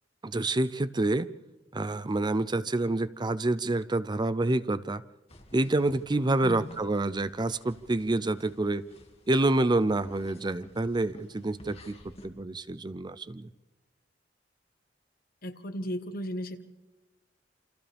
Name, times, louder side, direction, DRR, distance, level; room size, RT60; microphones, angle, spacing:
voice 1, 0.2-1.3 1.7-5.0 5.5-8.9 9.3-13.5, right 2 dB, 25° right, 14 dB, 0.6 m, -28 dB
sound 1, 5.3-12.3, left 1 dB, 35° left, 2.1 m, -53 dB
voice 2, 6.4-6.8 15.4-16.6, equal, 55° left, 8 dB, 1.3 m, -35 dB
28.0 x 26.5 x 3.5 m, 1.1 s
head